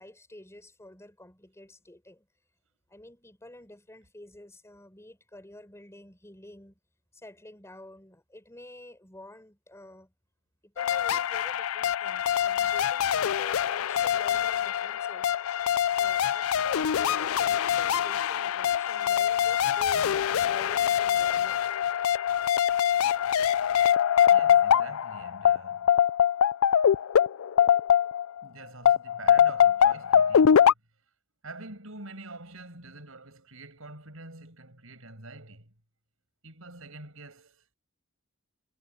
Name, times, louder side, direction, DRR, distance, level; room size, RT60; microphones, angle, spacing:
voice 1, 0.0-2.3 2.9-6.8 7.1-10.1 10.6-15.3 16.0-21.6, left 1 dB, 15° left, 4.2 m, -49 dB
sound 1, 10.8-28.4 28.9-30.7, left 9 dB, 75° left, 0.4 m, -23 dB
voice 2, 24.3-26.0 28.4-30.7 31.4-35.7 36.4-37.7, right 2 dB, 75° right, 6.6 m, -46 dB
head